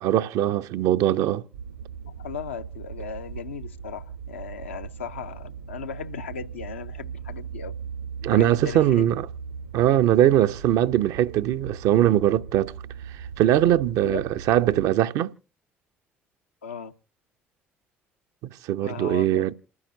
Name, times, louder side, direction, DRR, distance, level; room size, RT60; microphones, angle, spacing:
voice 1, 0.0-1.4 8.2-9.3 9.7-12.7 13.4-15.3 18.7-19.5, right 12 dB, 60° right, 0.5 m, -21 dB
sound 1, 1.5-14.9, right 6 dB, 80° right, 2.9 m, -39 dB
voice 2, 2.0-7.7 8.3-9.1 14.0-14.2 16.6-16.9 18.8-19.5, left 6 dB, 80° left, 0.5 m, -37 dB
28.5 x 9.5 x 2.6 m
figure-of-eight pair, 50°, 7 cm